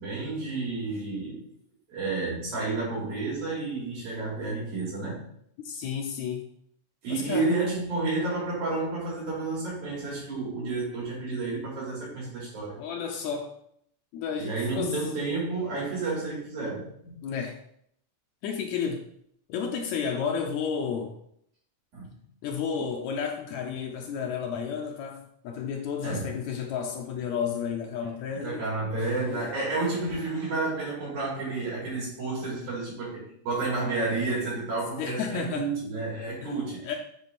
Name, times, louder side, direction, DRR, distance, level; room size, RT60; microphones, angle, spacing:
voice 1, 0.0-1.5 1.9-5.3 7.0-12.8 14.4-17.1 20.2-20.3 21.9-22.1 26.0-26.3 28.4-37.0, right 3 dB, 85° right, -6 dB, 4.3 m, -31 dB
voice 2, 5.6-6.4 7.1-7.6 12.8-13.5 14.1-15.0 17.2-17.6 18.4-19.0 19.5-21.2 22.4-28.6 29.2-29.5 35.0-35.7 36.4-36.5 36.8-37.0, left 6 dB, 80° left, 2 dB, 1.9 m, -32 dB
8.0 x 3.8 x 4.1 m, 0.69 s
omnidirectional pair, 3.4 m